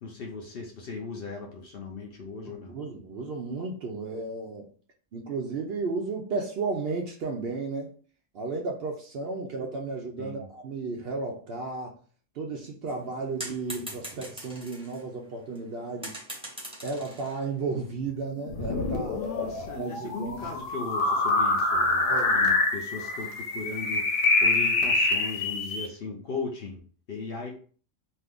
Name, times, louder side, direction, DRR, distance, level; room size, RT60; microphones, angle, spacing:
voice 1, 0.0-2.8 10.2-10.5 19.1-22.1 22.3-27.6, left 4 dB, 55° left, 0 dB, 0.7 m, -38 dB
voice 2, 2.5-4.7 5.1-7.9 8.3-12.0 12.4-16.1 16.8-19.2 19.8-20.5 22.1-22.5, right 3 dB, 65° right, 1 dB, 0.6 m, -33 dB
sound 1, 12.9-15.0 15.6-15.7 16.0-17.8, right 1 dB, 5° right, 0.8 m, -41 dB
sound 2, 18.5-25.9, left 3 dB, 85° left, 1.1 m, -26 dB
2.6 x 2.4 x 3.5 m, 0.42 s
omnidirectional pair, 1.4 m